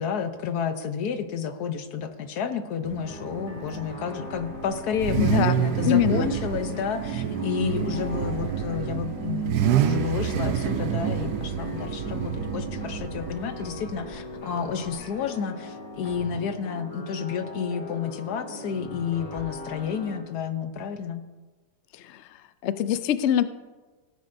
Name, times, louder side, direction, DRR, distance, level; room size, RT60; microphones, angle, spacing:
voice 1, 0.0-21.2, left 7 dB, 65° left, 8 dB, 1.3 m, -31 dB
Car / Idling / Accelerating revving vroom, 2.8-14.9, right 9 dB, 70° right, 1.2 m, -28 dB
sound 1, 3.0-20.2, left 2 dB, 50° left, 2.8 m, -40 dB
voice 2, 5.2-5.5 5.8-6.3 22.0-22.2 22.6-23.4, left 10 dB, 90° left, 12 dB, 0.6 m, -23 dB
17.5 x 9.2 x 2.6 m, 1.3 s
omnidirectional pair, 1.9 m